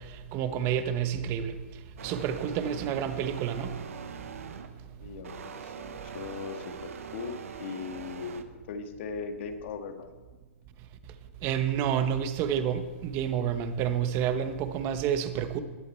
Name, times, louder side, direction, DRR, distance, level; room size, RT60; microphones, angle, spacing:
voice 1, 0.3-1.5 2.0-3.7 11.4-15.6, right 9 dB, 30° right, 9 dB, 1.2 m, -29 dB
sound 1, 2.0-4.8 5.2-8.4, right 7 dB, 75° right, 1.3 m, -42 dB
voice 2, 5.0-10.1, left 5 dB, 55° left, 6 dB, 1.9 m, -39 dB
19.5 x 8.0 x 4.6 m, 1.3 s
hypercardioid pair, 140°, 8 cm